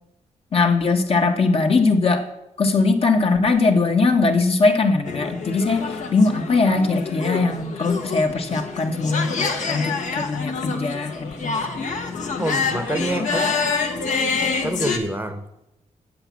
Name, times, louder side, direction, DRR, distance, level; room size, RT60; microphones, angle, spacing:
voice 1, 0.5-2.3 2.6-11.6, left 3 dB, 50° left, 4 dB, 1.3 m, -20 dB
sound 1, 5.0-15.0, left 4 dB, 70° left, 1.4 m, -27 dB
voice 2, 12.4-13.5 14.6-15.7, right 1 dB, 15° right, 9 dB, 0.9 m, -27 dB
8.3 x 7.8 x 7.4 m, 0.89 s
cardioid pair, 100°, 13 cm